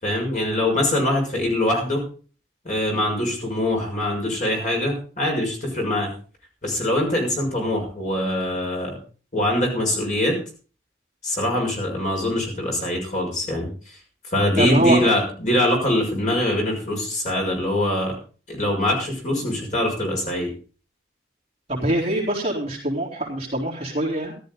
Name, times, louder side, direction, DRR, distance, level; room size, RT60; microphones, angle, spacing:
voice 1, 0.0-2.0 2.6-6.1 6.6-9.0 9.3-10.4 11.2-13.7 14.3-18.2 18.5-20.5, left 1 dB, 45° left, 0 dB, 6.3 m, -23 dB
voice 2, 14.6-15.0 21.7-24.3, right 1 dB, 35° right, -3 dB, 3.7 m, -23 dB
15.0 x 13.0 x 4.0 m, 0.38 s
head